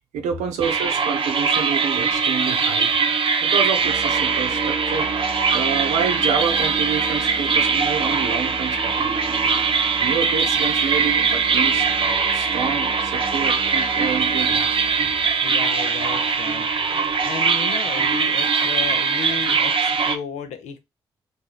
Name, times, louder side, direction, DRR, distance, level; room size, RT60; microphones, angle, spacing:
voice 1, 0.1-2.9 3.4-5.1 5.5-9.2 10.0-11.8 12.3-14.8, right 6 dB, 85° right, 0.7 m, -28 dB
sound 1, 0.6-20.2, right 5 dB, 50° right, 0.7 m, -21 dB
Musical instrument, 3.8-15.4, right 3 dB, 15° right, 0.8 m, -37 dB
voice 2, 15.4-20.8, left 7 dB, 80° left, 0.6 m, -34 dB
3.0 x 2.7 x 3.7 m
hypercardioid pair, 40°, 12 cm